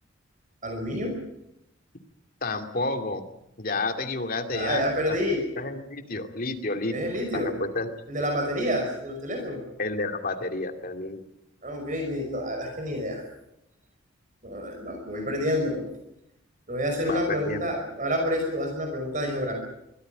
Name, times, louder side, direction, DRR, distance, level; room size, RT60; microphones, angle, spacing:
voice 1, 0.6-1.1 4.5-5.4 6.9-7.5 8.1-9.6 11.6-13.2 14.4-15.8 16.7-19.5, equal, 40° right, 3 dB, 5.3 m, -28 dB
voice 2, 2.4-3.2 3.6-5.2 5.6-6.9 7.3-7.9 9.8-11.2 17.1-17.7, left 3 dB, 45° left, 5 dB, 2.5 m, -30 dB
24.0 x 16.5 x 9.1 m, 0.83 s
head